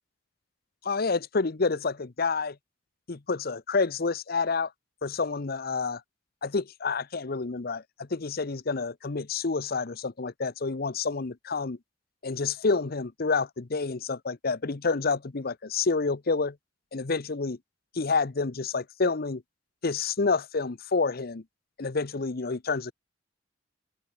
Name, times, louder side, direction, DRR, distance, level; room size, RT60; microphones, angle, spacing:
voice 1, 0.8-2.6 3.1-4.7 5.0-6.0 6.4-11.8 12.2-16.5 16.9-17.6 17.9-19.4 19.8-21.4 21.8-22.9, left 4 dB, 55° left, 0.8 m, -28 dB
open air
head